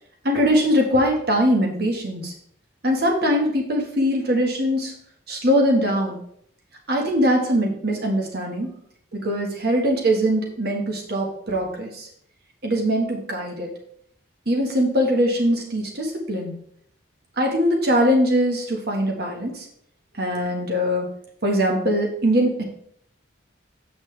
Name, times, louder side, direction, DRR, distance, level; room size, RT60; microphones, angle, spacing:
voice 1, 0.2-2.3 2.8-4.9 5.3-6.2 6.9-8.7 9.1-12.1 12.6-13.7 14.5-16.5 17.4-19.6 20.2-21.1 21.4-22.6, equal, 50° right, 0 dB, 1.6 m, -21 dB
7.8 x 5.9 x 3.4 m, 0.66 s
head